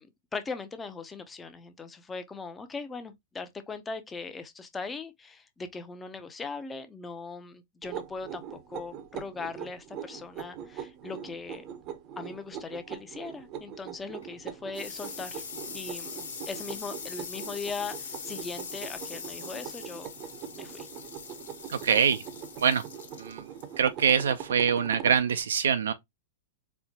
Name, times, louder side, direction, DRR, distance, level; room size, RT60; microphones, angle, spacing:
voice 1, 0.0-11.6 12.2-15.4 15.7-20.1 20.5-20.9, left 4 dB, 15° left, 0.5 m, -39 dB
sound 1, 7.8-25.2, right 9 dB, 40° right, 0.6 m, -42 dB
sound 2, 14.0-25.3, left 5 dB, 90° left, 1.2 m, -43 dB
voice 2, 21.7-22.2 22.6-22.8 23.2-23.5 23.8-25.9, right 7 dB, 90° right, 0.4 m, -24 dB
4.3 x 2.1 x 2.8 m
hypercardioid pair, 125°, 0 cm